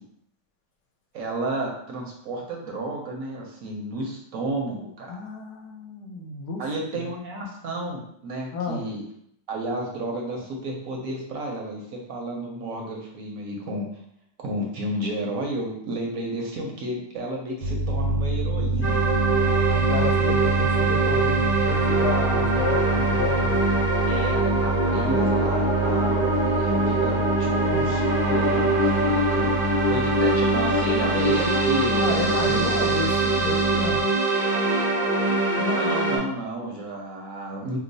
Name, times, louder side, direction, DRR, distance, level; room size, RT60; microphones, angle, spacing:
voice 1, 1.1-5.1 6.6-9.0 9.5-13.9 14.4-19.0 24.1-32.8 35.6-37.8, right 1 dB, 65° right, -1 dB, 0.9 m, -32 dB
voice 2, 5.1-6.6 6.9-7.0 8.5-8.9 19.4-23.5 32.0-34.0, left 4 dB, 75° left, 1 dB, 1.1 m, -31 dB
sound 1, 17.6-34.0, right 4 dB, 85° right, 1.3 m, -28 dB
sound 2, 18.8-36.2, right 2 dB, 15° left, 0.5 m, -23 dB
2.9 x 2.0 x 3.9 m, 0.72 s
omnidirectional pair, 1.9 m